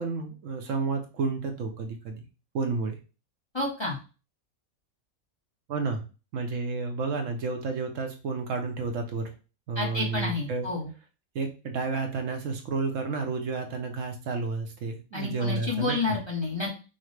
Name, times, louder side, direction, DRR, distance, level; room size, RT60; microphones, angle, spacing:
voice 1, 0.0-2.2 2.5-3.0 5.7-6.0 6.3-9.3 9.7-10.7 11.3-16.0, right 4 dB, 70° right, 4 dB, 1.0 m, -31 dB
voice 2, 3.5-4.0 9.8-10.9 15.1-16.7, left 3 dB, 25° left, -3 dB, 0.8 m, -30 dB
5.6 x 2.2 x 3.2 m, 0.32 s
omnidirectional pair, 1.4 m